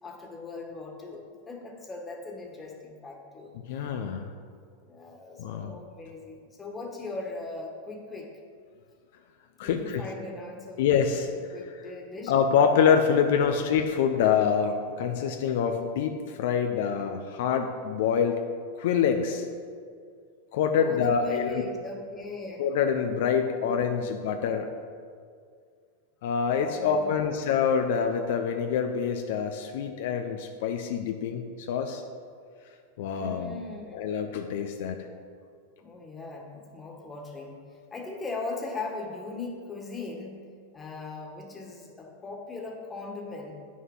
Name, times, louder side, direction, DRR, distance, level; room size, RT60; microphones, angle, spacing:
voice 1, 0.0-4.0 4.8-8.3 9.6-11.1 11.5-12.3 13.1-13.7 20.8-22.6 23.6-24.1 26.5-27.6 33.1-34.0 35.8-40.5 40.7-43.5, left 3 dB, 15° left, 0 dB, 1.7 m, -39 dB
voice 2, 3.7-4.3 5.4-5.7 9.6-10.0 10.8-11.3 12.3-18.4 18.8-19.5 20.5-21.6 22.6-24.7 26.2-32.0 33.0-33.5 33.9-35.0, left 7 dB, 70° left, 5 dB, 0.7 m, -26 dB
9.4 x 6.3 x 5.6 m, 2.1 s
hypercardioid pair, 120°, 0 cm